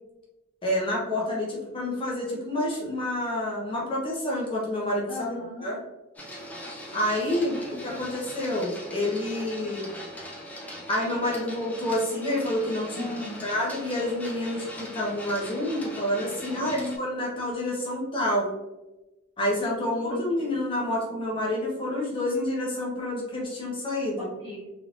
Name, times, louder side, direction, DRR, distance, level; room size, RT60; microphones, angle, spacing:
voice 1, 0.6-5.1 5.6-5.8 6.9-9.8 10.9-13.1 13.4-18.5 19.4-24.2, left 1 dB, 25° left, -4 dB, 0.9 m, -28 dB
voice 2, 5.1-5.7 7.5-8.1 9.6-9.8 12.9-13.4 16.5-17.0 19.9-20.5 24.4-24.7, left 2 dB, 20° right, -12 dB, 1.2 m, -37 dB
Printer, 6.2-17.0, equal, 10° left, 0.6 m, -40 dB
3.3 x 3.2 x 2.5 m, 1.0 s
head